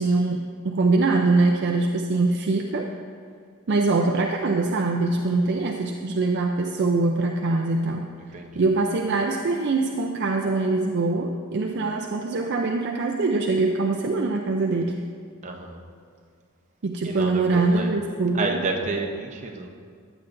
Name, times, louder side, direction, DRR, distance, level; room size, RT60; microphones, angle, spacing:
voice 1, 0.0-2.9 3.7-8.1 8.5-15.0 16.8-18.6, right 3 dB, 50° right, 2 dB, 0.4 m, -23 dB
voice 2, 15.4-15.8 17.0-18.0 18.3-19.7, right 3 dB, 35° right, 1 dB, 0.8 m, -30 dB
14.5 x 8.8 x 2.6 m, 2.1 s
head